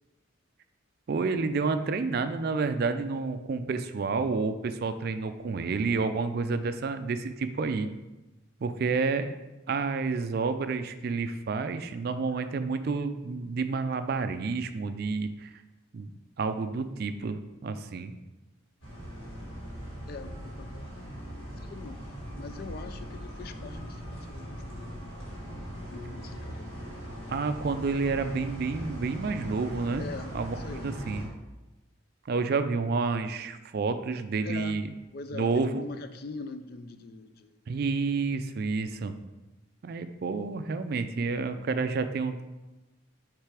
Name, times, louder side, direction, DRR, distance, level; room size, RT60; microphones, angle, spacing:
voice 1, 1.1-7.9 8.6-9.3 9.7-15.5 15.9-16.1 16.4-18.1 27.3-30.0 30.3-31.3 32.3-34.9 35.3-35.8 37.7-39.1 39.8-42.4, right 4 dB, 50° right, 10 dB, 0.3 m, -29 dB
sound 1, 18.8-31.3, equal, 65° left, 2.1 m, -40 dB
voice 2, 20.1-21.2 21.5-22.0 22.4-25.0 25.9-26.7 30.0-31.0 34.4-34.8 35.1-37.6, left 3 dB, 50° left, 10 dB, 0.4 m, -42 dB
6.6 x 3.3 x 4.8 m, 1.1 s
head